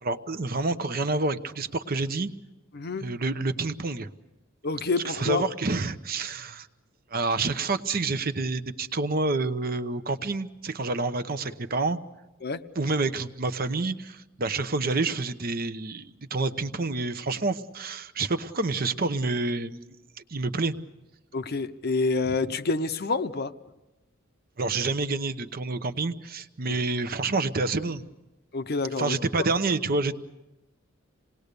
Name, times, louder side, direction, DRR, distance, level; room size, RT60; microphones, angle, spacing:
voice 1, 0.0-2.3 3.0-4.1 5.0-6.7 7.1-12.0 12.7-19.9 20.3-20.7 24.6-28.0 29.0-30.2, right 3 dB, 45° right, 11 dB, 0.9 m, -28 dB
voice 2, 2.7-3.1 4.6-5.4 12.4-12.6 21.3-23.5 28.5-29.2, left 3 dB, 50° left, 11 dB, 0.8 m, -27 dB
27.5 x 19.0 x 6.8 m, 1.0 s
head